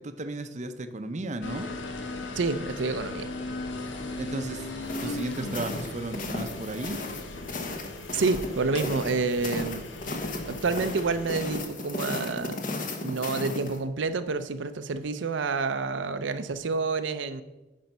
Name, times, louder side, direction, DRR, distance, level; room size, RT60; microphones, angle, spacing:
voice 1, 0.0-1.7 4.2-7.0 8.7-8.9, right 2 dB, 40° right, 8 dB, 0.6 m, -35 dB
sound 1, 1.4-11.6, left 2 dB, 90° left, 1.2 m, -38 dB
voice 2, 2.3-3.3 8.1-9.8 10.4-12.6 13.0-17.4, right 4 dB, 80° right, 9 dB, 0.6 m, -28 dB
sound 2, 4.8-13.8, left 2 dB, 45° left, 1.1 m, -36 dB
10.5 x 5.4 x 5.3 m, 1.0 s
head